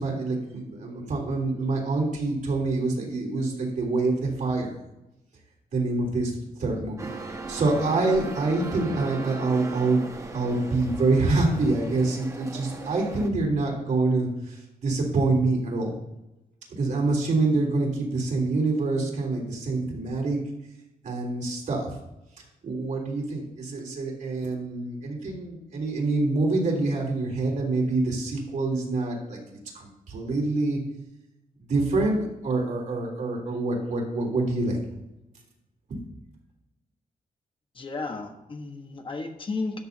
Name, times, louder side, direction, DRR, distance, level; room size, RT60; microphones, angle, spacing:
voice 1, 0.0-4.8 5.7-6.3 6.6-10.0 10.3-15.9 16.7-20.4 21.0-21.9 22.6-29.4 29.7-30.8 31.7-34.8 35.9-36.0, right 3 dB, 60° right, -1 dB, 3.4 m, -26 dB
sound 1, 7.0-13.3, right 3 dB, 20° right, 0.9 m, -38 dB
voice 2, 37.7-39.9, left 3 dB, 35° left, 3 dB, 1.3 m, -33 dB
13.5 x 10.0 x 2.8 m, 0.93 s
wide cardioid pair, 180°, 15 cm